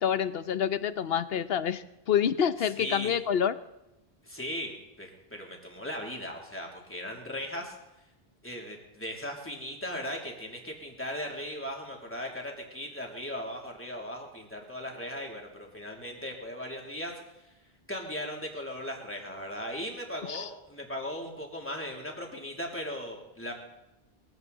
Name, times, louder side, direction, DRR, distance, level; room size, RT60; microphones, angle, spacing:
voice 1, 0.0-3.5 20.3-20.5, left 8 dB, 70° left, 13 dB, 1.0 m, -27 dB
voice 2, 2.8-3.1 4.2-7.7 8.4-17.1 17.4-17.5 17.9-23.5, equal, 10° left, 0 dB, 3.0 m, -38 dB
21.5 x 15.5 x 4.1 m, 0.93 s
omnidirectional pair, 1.0 m